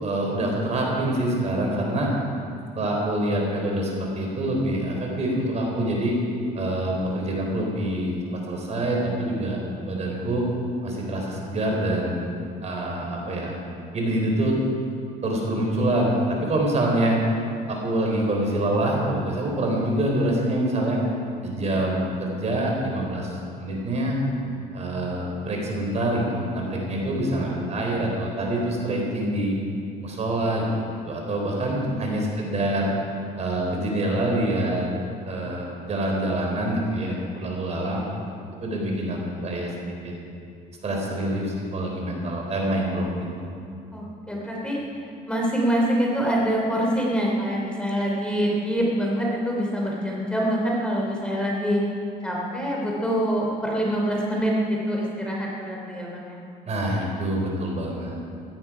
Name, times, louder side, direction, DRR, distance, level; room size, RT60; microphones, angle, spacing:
voice 1, 0.0-2.1 2.8-6.2 6.6-8.1 8.5-9.6 9.9-10.5 10.8-12.3 12.6-13.5 13.9-14.6 15.2-17.2 17.7-21.0 21.4-24.2 24.7-29.6 30.0-32.9 33.4-34.8 35.3-38.0 38.6-39.7 40.0-40.1 40.8-43.1 43.4-43.5 56.7-58.2, right 1 dB, 40° right, -1 dB, 3.8 m, -25 dB
voice 2, 43.9-44.8 45.3-51.8 52.2-56.4, equal, 5° left, -3 dB, 3.1 m, -25 dB
16.0 x 13.0 x 4.9 m, 2.4 s
cardioid pair, 110°, 17 cm